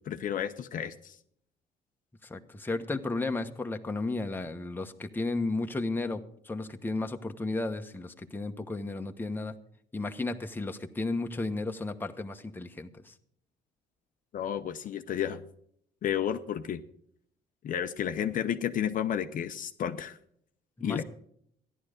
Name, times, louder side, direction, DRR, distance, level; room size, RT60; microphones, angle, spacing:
voice 1, 0.1-1.2 14.3-15.4 16.0-16.8 17.6-20.2 20.8-21.0, left 9 dB, 50° left, 8 dB, 0.8 m, -32 dB
voice 2, 2.3-9.5 9.9-13.1 20.8-21.0, left 2 dB, 10° left, 5 dB, 1.1 m, -33 dB
14.0 x 11.0 x 5.0 m, 0.68 s
cardioid pair, 110°, 17 cm